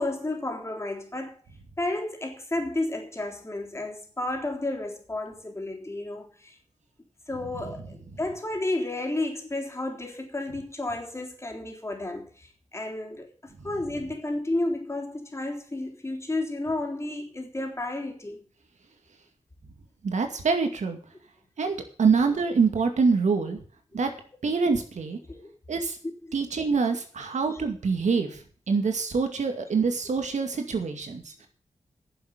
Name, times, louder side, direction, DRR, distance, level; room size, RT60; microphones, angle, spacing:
voice 1, 0.0-1.4 1.8-6.6 7.3-18.5 25.3-25.5, left 2 dB, 20° left, 3.6 m, -32 dB
voice 2, 20.0-21.0 21.6-23.6 23.9-24.1 24.4-25.2 25.7-26.0 26.3-28.4 28.7-31.5, right 5 dB, 80° right, 2.2 m, -25 dB
10.5 x 7.1 x 9.3 m
wide cardioid pair, 85°, 12 cm